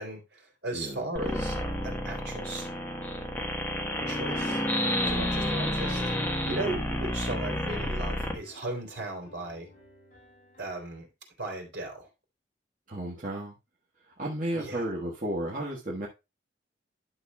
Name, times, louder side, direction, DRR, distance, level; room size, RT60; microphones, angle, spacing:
voice 1, 0.0-1.6 1.8-2.7 4.0-4.6 5.0-6.1 6.4-9.7 10.6-11.1 11.4-12.1 14.6-14.9, right 2 dB, 70° right, 2 dB, 3.2 m, -36 dB
sound 1, 1.2-8.4, left 1 dB, 10° left, 1.3 m, -30 dB
Piano, 4.2-11.0, left 1 dB, 45° left, 4.0 m, -56 dB
voice 2, 12.9-13.5 14.2-16.1, right 1 dB, 45° right, -4 dB, 1.5 m, -33 dB
11.0 x 6.5 x 2.3 m, 0.24 s
head